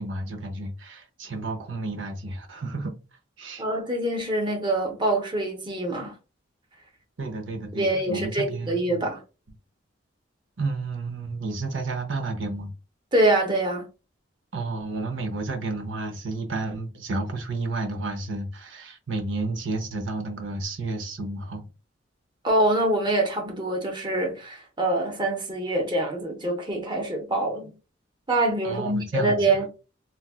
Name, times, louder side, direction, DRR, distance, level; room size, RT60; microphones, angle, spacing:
voice 1, 0.0-2.9 3.4-3.6 7.2-9.1 10.6-12.7 14.5-21.7 28.6-29.6, right 3 dB, 75° right, 0.6 m, -31 dB
voice 2, 3.6-6.1 7.7-9.2 13.1-13.8 22.4-27.7 28.3-29.7, right 1 dB, 25° right, 0.8 m, -25 dB
4.0 x 2.2 x 2.3 m
head